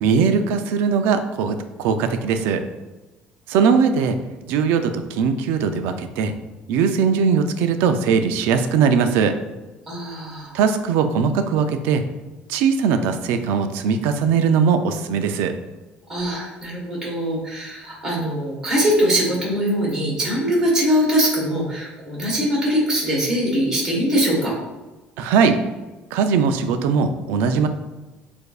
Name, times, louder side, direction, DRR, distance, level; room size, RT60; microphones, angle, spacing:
voice 1, 0.0-2.6 3.5-4.2 4.5-6.3 6.7-9.3 10.5-12.0 12.5-15.5 25.2-25.6 26.1-27.7, right 6 dB, 80° right, 8 dB, 0.4 m, -20 dB
voice 2, 9.9-10.6 16.1-24.5, equal, 15° right, -5 dB, 1.3 m, -22 dB
6.6 x 2.6 x 2.4 m, 1.1 s
cardioid pair, 180°, 4 cm